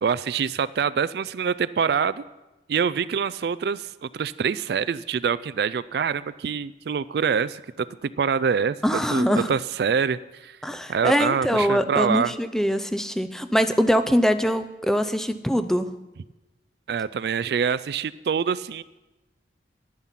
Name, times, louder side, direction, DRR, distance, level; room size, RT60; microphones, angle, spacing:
voice 1, 0.0-2.2 2.7-8.8 9.1-10.6 10.9-12.3 16.9-18.8, right 6 dB, 60° right, 16 dB, 0.3 m, -25 dB
voice 2, 8.8-9.5 10.6-15.9, equal, 5° left, 10 dB, 0.4 m, -23 dB
11.0 x 10.5 x 5.8 m, 1.0 s
head